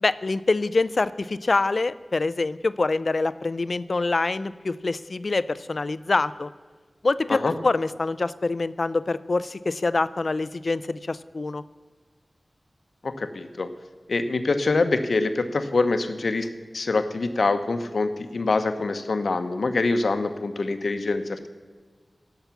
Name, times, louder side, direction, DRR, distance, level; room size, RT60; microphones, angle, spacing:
voice 1, 0.0-6.5 7.0-11.6, left 3 dB, 65° left, 15 dB, 0.4 m, -25 dB
voice 2, 13.0-13.7 14.1-16.5 16.7-21.4, left 3 dB, 80° left, 9 dB, 0.8 m, -25 dB
16.5 x 5.8 x 7.0 m, 1.5 s
cardioid pair, 45°, 0 cm